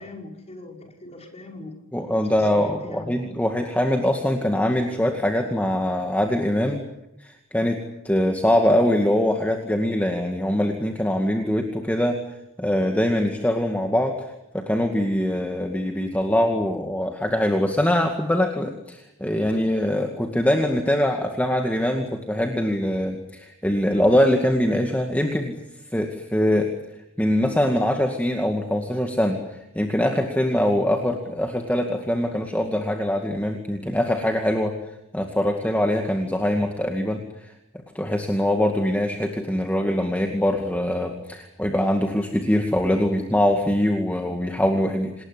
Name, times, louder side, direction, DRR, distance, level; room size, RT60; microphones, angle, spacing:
voice 1, 0.0-1.8 2.2-3.1, left 2 dB, 30° left, 2 dB, 5.5 m, -41 dB
voice 2, 1.9-6.8 7.2-12.2 12.6-14.2 14.5-25.6 25.9-26.7 27.2-34.8 35.1-37.5 37.9-45.2, left 1 dB, 5° left, 3 dB, 2.1 m, -23 dB
28.5 x 20.0 x 10.0 m, 0.88 s
head